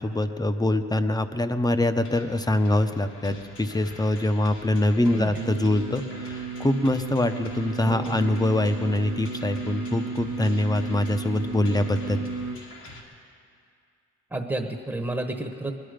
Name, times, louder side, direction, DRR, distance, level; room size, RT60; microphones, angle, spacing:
voice 1, 0.0-12.2, left 1 dB, 15° left, 9 dB, 0.7 m, -24 dB
sound 1, 2.0-13.0, left 2 dB, 80° left, 2.3 m, -45 dB
Singing, 5.3-12.6, right 4 dB, 85° right, 0.9 m, -34 dB
voice 2, 7.9-8.2 14.3-15.7, right 2 dB, 5° right, 4 dB, 1.0 m, -30 dB
21.5 x 11.5 x 5.1 m, 2.3 s
cardioid pair, 90°, 30 cm